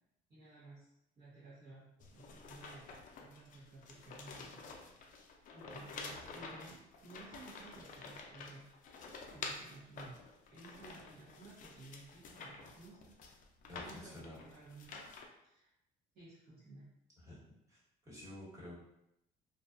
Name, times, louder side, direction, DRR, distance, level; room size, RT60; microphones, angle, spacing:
voice 1, 0.3-2.8 3.2-4.7 5.5-10.2 10.5-13.2 13.8-15.1 15.4-15.7 16.1-16.9, right 3 dB, 55° right, -9 dB, 0.9 m, -55 dB
sound 1, 2.0-15.3, left 4 dB, 50° left, 0.4 m, -50 dB
voice 2, 13.7-14.4 17.2-17.4 17.7-18.8, left 1 dB, 20° right, -7 dB, 1.2 m, -51 dB
2.5 x 2.2 x 2.4 m, 0.83 s
cardioid pair, 110°, 17 cm